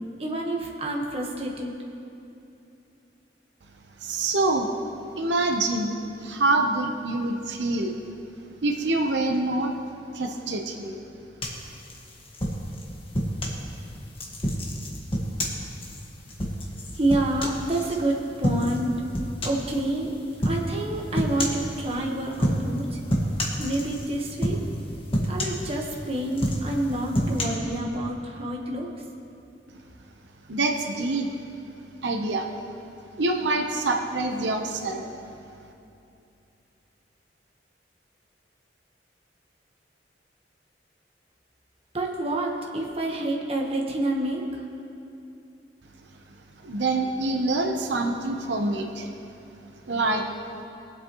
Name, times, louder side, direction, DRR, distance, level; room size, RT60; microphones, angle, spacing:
voice 1, 0.2-1.7 16.9-18.9 19.4-20.1 20.4-23.0 23.6-24.6 25.3-28.9 41.9-44.6, right 1 dB, 35° right, -1 dB, 1.2 m, -28 dB
voice 2, 4.0-4.7 5.2-5.9 6.2-7.9 8.6-9.7 10.1-11.0 30.5-31.3 32.0-32.5 33.2-35.1 46.6-49.1 49.9-50.2, right 2 dB, 85° right, 3 dB, 0.8 m, -25 dB
sound 1, 11.4-13.6 14.1-18.0 18.4-18.8 19.1-19.7 20.4-20.6 21.1-21.7 22.3-22.8 23.1-24.1 24.4-24.8 25.1-26.0 26.3-27.4, equal, 30° left, 1.5 m, -28 dB
21.5 x 7.9 x 3.0 m, 2.7 s
head